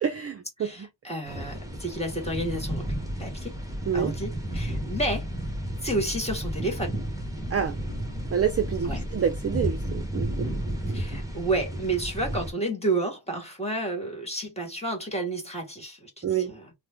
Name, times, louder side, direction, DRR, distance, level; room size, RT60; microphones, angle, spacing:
voice 1, 0.0-0.9 3.9-4.1 7.5-7.8 8.3-10.5 16.2-16.5, right 8 dB, 35° right, 0.4 m, -27 dB
voice 2, 0.6-2.9 3.2-3.5 3.9-5.3 5.8-7.0 8.8-9.0 10.9-16.7, right 2 dB, 15° left, 1.5 m, -31 dB
sound 1, 1.3-12.5, right 1 dB, 10° right, 1.0 m, -32 dB
3.1 x 2.1 x 3.4 m
wide cardioid pair, 100°, 42 cm